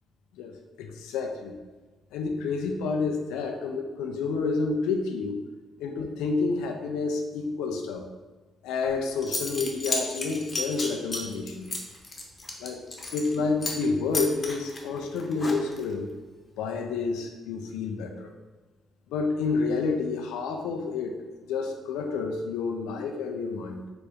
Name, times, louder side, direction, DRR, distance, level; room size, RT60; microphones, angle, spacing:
voice 1, 0.8-1.6 2.1-5.4 5.8-8.0 8.6-11.7 12.6-12.8 13.1-16.1 16.6-18.3 19.1-21.2 21.5-23.8, left 4 dB, 85° left, 4 dB, 0.5 m, -29 dB
Zipper (clothing) / Coin (dropping), 8.9-9.0 9.2-13.3 13.6-13.9 14.1-15.9, left 2 dB, 35° left, 0.9 m, -33 dB
3.9 x 3.5 x 3.5 m, 1.3 s
supercardioid pair, 65°, 0 cm